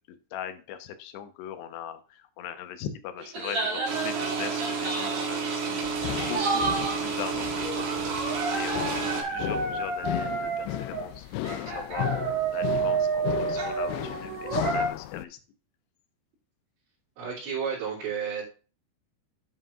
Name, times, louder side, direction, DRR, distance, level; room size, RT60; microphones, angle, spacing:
voice 1, 0.1-5.8 6.3-8.1 8.4-15.4, left 9 dB, 75° left, 9 dB, 3.0 m, -40 dB
sound 1, 3.2-5.3 6.1-7.1 7.6-11.1 11.4-14.9, right 4 dB, 40° right, 2.9 m, -30 dB
sound 2, 3.9-9.2, right 5 dB, 65° right, 3.8 m, -31 dB
sound 3, 5.8-15.3, left 15 dB, 90° left, 2.3 m, -35 dB
voice 2, 17.2-18.4, right 7 dB, 90° right, -8 dB, 5.5 m, -31 dB
11.5 x 7.8 x 2.5 m, 0.35 s
omnidirectional pair, 5.2 m